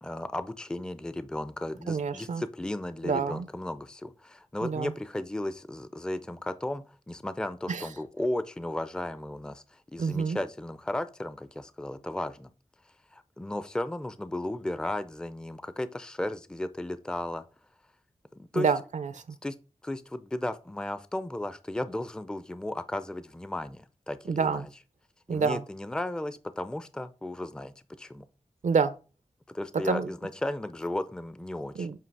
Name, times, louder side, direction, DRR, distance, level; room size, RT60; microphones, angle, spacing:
voice 1, 0.0-9.6 9.9-12.5 13.1-17.4 18.4-18.7 19.4-19.6 19.8-24.6 25.3-28.2 29.5-31.9, left 1 dB, 5° left, 0.4 m, -35 dB
voice 2, 1.9-2.4 3.0-3.5 4.6-4.9 7.7-7.9 10.0-10.4 18.5-19.2 24.3-24.7 25.3-25.6 28.6-28.9 29.8-30.1 31.7-32.0, right 5 dB, 75° right, 0.5 m, -28 dB
7.6 x 2.8 x 4.6 m
wide cardioid pair, 95°, 13 cm